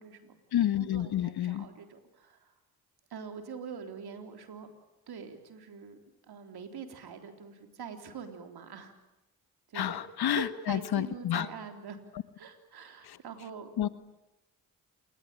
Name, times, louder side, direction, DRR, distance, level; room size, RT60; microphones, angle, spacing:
voice 1, 0.0-0.4 0.7-2.5 3.1-4.7 5.1-6.0 6.3-8.9 9.7-10.1 10.3-12.0 12.4-13.7, right 6 dB, 60° right, 6 dB, 3.8 m, -44 dB
voice 2, 0.5-1.6 9.7-11.5 13.1-13.2 13.8-13.9, left 11 dB, 60° left, 14 dB, 1.4 m, -29 dB
28.0 x 20.0 x 9.0 m, 0.97 s
hypercardioid pair, 45°, 42 cm